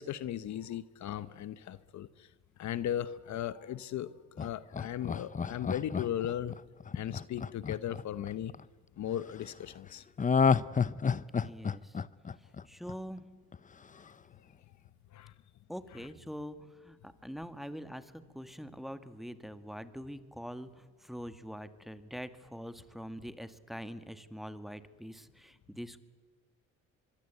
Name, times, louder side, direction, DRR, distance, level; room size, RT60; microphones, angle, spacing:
voice 1, 0.0-2.1 2.6-6.6 6.9-8.5 9.0-10.0 15.1-15.3, left 11 dB, 70° left, 15 dB, 0.9 m, -37 dB
Laughter, 4.4-8.6 10.2-13.2 13.5-13.6, left 6 dB, 25° left, 0.7 m, -30 dB
voice 2, 11.4-12.0 12.4-13.2 15.7-16.6 16.8-26.0, equal, ahead, 11 dB, 1.7 m, -44 dB
25.0 x 23.5 x 8.4 m, 1.5 s
cardioid pair, 90°, 30 cm